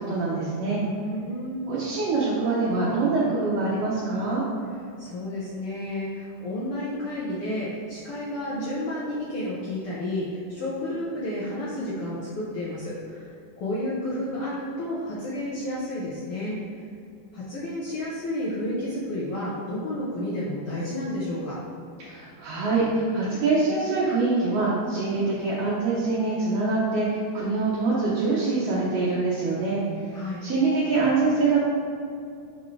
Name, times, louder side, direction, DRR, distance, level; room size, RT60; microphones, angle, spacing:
voice 1, 0.0-0.8 1.7-4.4 22.0-30.1 30.4-31.6, right 3 dB, 65° right, -8 dB, 1.7 m, -24 dB
voice 2, 0.8-1.6 5.0-13.3 13.6-16.6 17.3-21.6 30.1-30.4, left 1 dB, 65° left, -8 dB, 1.4 m, -31 dB
6.2 x 5.6 x 3.3 m, 2.4 s
omnidirectional pair, 3.6 m